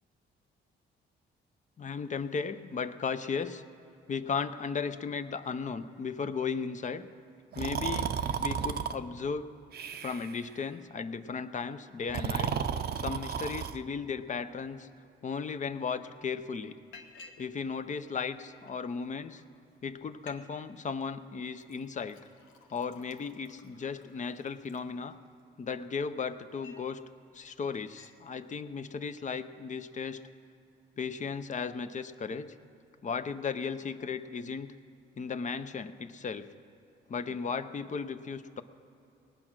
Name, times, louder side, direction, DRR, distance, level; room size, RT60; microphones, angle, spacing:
voice 1, 1.8-3.6 4.1-7.1 7.6-9.4 10.0-12.5 13.0-14.9 15.2-16.8 17.4-19.4 19.8-22.2 22.7-25.2 25.6-27.0 27.3-30.2 31.0-32.5 33.0-34.7 35.2-36.5 37.1-38.6, left 5 dB, 40° left, 11 dB, 0.7 m, -35 dB
Breathing, 7.5-8.9 9.7-10.4 12.0-13.8, right 7 dB, 55° right, 0.7 m, -33 dB
Liquid, 16.9-17.5 17.8-18.7 19.4-19.5 19.8-19.9 20.1-20.4 20.7-21.1 21.6-25.4 25.9-26.9 27.3-27.5 27.7-28.2, left 4 dB, 85° left, 1.1 m, -55 dB
19.0 x 8.8 x 6.1 m, 2.8 s
cardioid pair, 90°, 20 cm